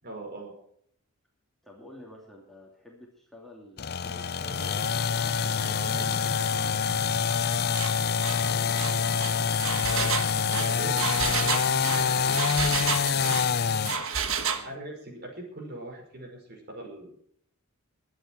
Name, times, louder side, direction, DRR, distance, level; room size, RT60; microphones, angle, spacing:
voice 1, 0.0-0.5 9.9-12.9 14.6-17.1, right 2 dB, 45° right, 1 dB, 5.3 m, -41 dB
voice 2, 1.6-7.0 14.5-14.7, left 1 dB, ahead, -2 dB, 2.9 m, -52 dB
sound 1, 3.8-14.0, left 6 dB, 45° left, 0.6 m, -26 dB
sound 2, 4.4-13.9, equal, 15° right, 4.6 m, -41 dB
Engine, 7.7-7.9 8.2-8.4 8.7-13.5 13.9-14.7, right 6 dB, 60° right, 1.5 m, -30 dB
22.5 x 9.3 x 4.6 m, 0.65 s
head